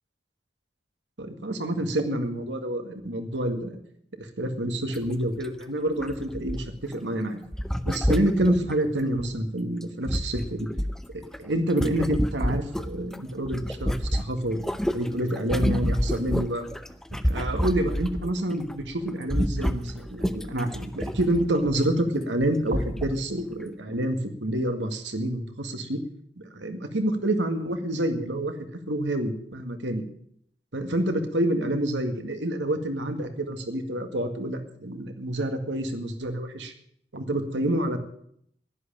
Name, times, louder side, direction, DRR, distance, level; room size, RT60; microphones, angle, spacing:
voice 1, 1.2-3.8 4.2-7.4 7.9-10.7 11.1-14.7 14.9-16.6 17.2-26.0 26.5-28.5 28.9-30.0 30.7-36.7 37.1-38.0, right 1 dB, 90° right, 6 dB, 1.9 m, -28 dB
sound 1, 4.9-5.1 5.4-5.5 6.0-6.9 7.5-9.3 9.8-13.2 13.5-18.3 18.6-18.8 19.1-21.8 22.4-22.5 22.7-23.2 23.6-23.7, equal, 5° left, 0.6 m, -29 dB
11.0 x 11.0 x 8.9 m, 0.69 s
head